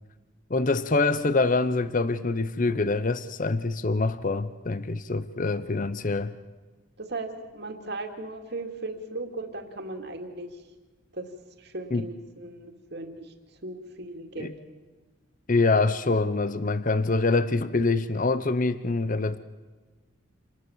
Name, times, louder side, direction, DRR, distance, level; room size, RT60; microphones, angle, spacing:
voice 1, 0.5-6.3 11.9-12.1 14.4-14.5 15.5-19.4, left 3 dB, 40° left, 0.7 m, -25 dB
voice 2, 7.0-10.6 11.1-11.3 11.6-13.3 13.6-14.5, right 2 dB, 50° right, 2.4 m, -37 dB
27.5 x 19.5 x 7.2 m
head